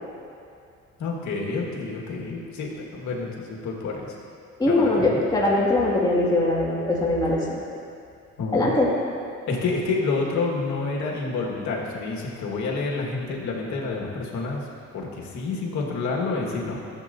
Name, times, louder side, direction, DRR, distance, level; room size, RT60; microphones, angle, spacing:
voice 1, 1.0-4.1 4.6-5.2 8.4-8.7 9.5-14.6 14.9-16.8, left 3 dB, 70° left, -2 dB, 1.7 m, -28 dB
voice 2, 4.6-7.6 8.5-8.9, left 2 dB, 15° left, -5 dB, 2.1 m, -21 dB
13.5 x 7.8 x 2.7 m, 2.5 s
cardioid pair, 90°, 30 cm